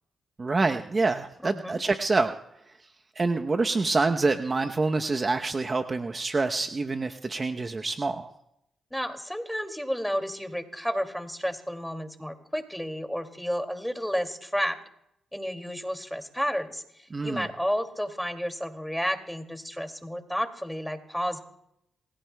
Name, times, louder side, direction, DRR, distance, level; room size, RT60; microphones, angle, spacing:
voice 1, 0.4-2.3 3.2-8.3 17.1-17.5, right 3 dB, 35° right, 6 dB, 0.8 m, -26 dB
voice 2, 1.4-1.8 8.9-14.8 15.3-21.4, equal, ahead, 5 dB, 2.4 m, -31 dB
28.0 x 16.5 x 2.3 m, 0.79 s
supercardioid pair, 50°, 0 cm